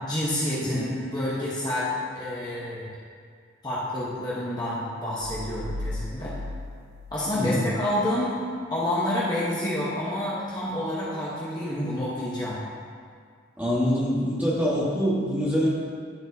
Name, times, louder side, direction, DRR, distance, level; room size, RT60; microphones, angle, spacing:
voice 1, 0.0-2.9 3.6-6.3 7.1-8.4 8.7-12.6, left 1 dB, 20° left, -8 dB, 1.2 m, -28 dB
sound 1, 5.2-8.0, left 1 dB, 70° right, 0.5 m, -36 dB
voice 2, 7.3-7.7 13.6-15.7, equal, 10° right, -8 dB, 1.5 m, -25 dB
13.0 x 4.5 x 2.8 m, 2.1 s
head